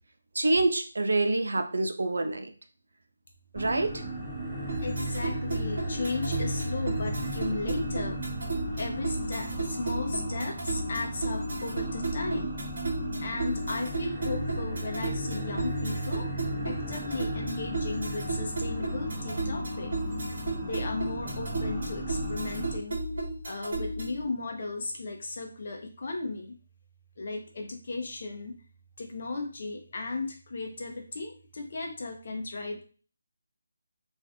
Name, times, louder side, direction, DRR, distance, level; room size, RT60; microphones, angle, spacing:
voice 1, 0.4-2.5 3.5-3.9, right 2 dB, 80° right, 6 dB, 0.5 m, -26 dB
sound 1, 3.6-22.8, right 1 dB, 10° right, 0.5 m, -36 dB
voice 2, 3.9-4.2 4.8-8.2 8.7-12.6 13.2-19.9 20.6-23.0 23.4-26.6 27.2-28.5 29.0-32.8, left 3 dB, 45° left, 2 dB, 0.7 m, -35 dB
sound 2, 4.7-24.3, right 2 dB, 55° right, 1.1 m, -34 dB
2.6 x 2.4 x 3.5 m, 0.38 s
figure-of-eight pair, 175°, 0 cm